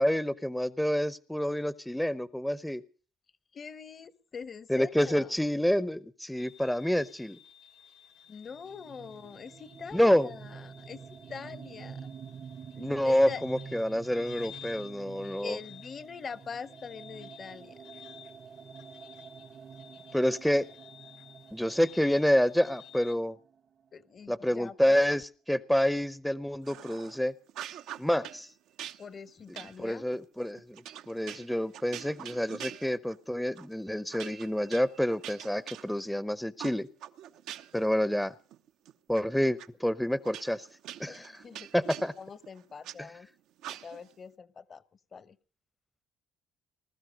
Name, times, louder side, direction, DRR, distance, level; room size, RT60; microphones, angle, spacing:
voice 1, 0.0-2.8 4.7-7.4 9.9-10.3 12.8-15.6 20.1-20.7 21.5-23.4 24.3-27.3 28.0-28.5 29.8-36.9 37.7-38.3 39.1-40.7 41.0-41.3 41.7-42.1 43.0-43.1, equal, 5° left, 17 dB, 0.7 m, -28 dB
voice 2, 3.5-5.3 8.3-11.0 11.3-12.0 13.0-13.4 15.4-17.8 23.9-25.0 29.0-30.1 41.1-41.7 42.2-43.3 43.8-45.4, left 6 dB, 45° left, 17 dB, 1.0 m, -43 dB
sound 1, 6.4-23.1, left 9 dB, 85° left, 2.5 m, -54 dB
sound 2, 8.5-24.1, right 6 dB, 50° right, 0.9 m, -48 dB
sound 3, 26.6-27.2 27.5-28.4 28.8-33.2 33.6-33.7 34.1-36.2 36.6-37.9 38.2-39.2 39.6-39.7 40.2-43.0 43.6-44.1, right 11 dB, 75° right, 0.8 m, -44 dB
20.0 x 12.5 x 5.2 m, 0.39 s
supercardioid pair, 75°, 0 cm